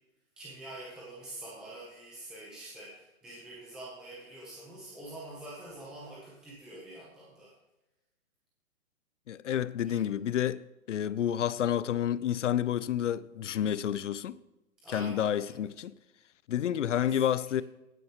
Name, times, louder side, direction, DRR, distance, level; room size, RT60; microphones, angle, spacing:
voice 1, 0.4-7.5 9.9-10.0 14.8-15.7 17.0-17.4, right 1 dB, ahead, 0.7 m, -46 dB
voice 2, 9.3-10.6 10.9-14.4 14.9-15.9 16.5-17.6, left 10 dB, 60° left, 0.5 m, -29 dB
16.0 x 9.2 x 3.0 m
hypercardioid pair, 155°, 42 cm